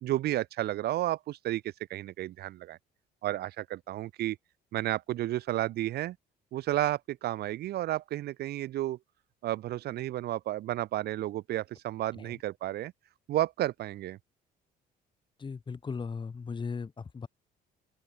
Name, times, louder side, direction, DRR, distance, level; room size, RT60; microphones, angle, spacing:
voice 1, 0.0-2.8 3.2-4.4 4.7-6.2 6.5-9.0 9.4-12.9 13.3-14.2, right 14 dB, 70° right, 2.2 m, -32 dB
voice 2, 15.4-17.3, left 5 dB, 30° left, 3.8 m, -37 dB
open air
cardioid pair, 110°, 17 cm